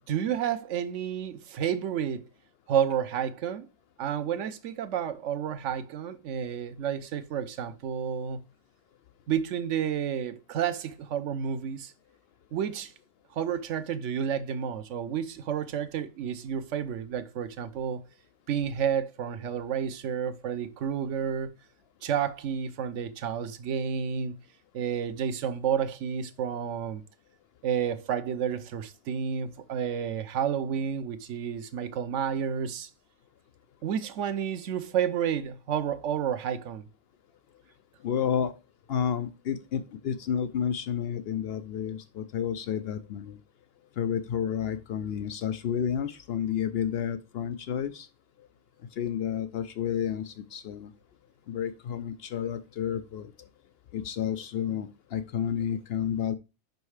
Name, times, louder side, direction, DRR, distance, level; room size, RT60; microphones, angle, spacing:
voice 1, 0.1-2.3 2.7-3.7 4.0-8.4 9.3-11.9 12.5-12.9 13.3-18.0 18.5-21.5 22.0-24.3 24.7-27.0 27.6-32.9 33.8-36.9, right 8 dB, 60° right, 0.9 m, -30 dB
voice 2, 38.0-38.5 38.9-43.4 44.0-48.1 49.0-50.9 51.5-53.5 53.9-56.3, left 8 dB, 75° left, 0.5 m, -31 dB
5.6 x 5.3 x 4.8 m
omnidirectional pair, 1.6 m